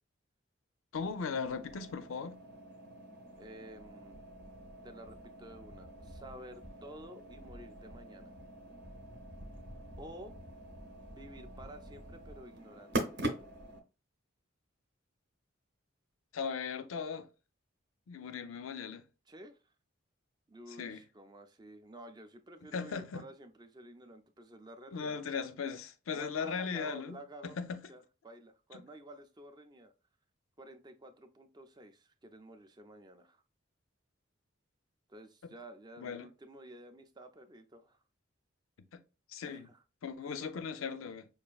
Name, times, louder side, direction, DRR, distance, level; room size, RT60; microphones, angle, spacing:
voice 1, 0.9-2.4 16.3-17.3 18.1-19.0 20.8-21.0 22.7-23.3 24.9-27.9 28.7-28.8 36.0-36.3 38.9-39.0 39.3-39.7 40.0-41.3, left 5 dB, 85° left, 0.5 m, -38 dB
sound 1, 0.9-13.8, right 1 dB, 55° right, 0.8 m, -44 dB
voice 2, 3.4-4.2 4.8-8.3 10.0-10.4 11.1-13.1 19.3-19.6 20.5-25.2 26.1-27.6 27.9-29.9 30.6-33.4 35.1-38.0 39.5-39.8, right 1 dB, 20° right, 0.4 m, -51 dB
5.3 x 2.4 x 2.3 m
head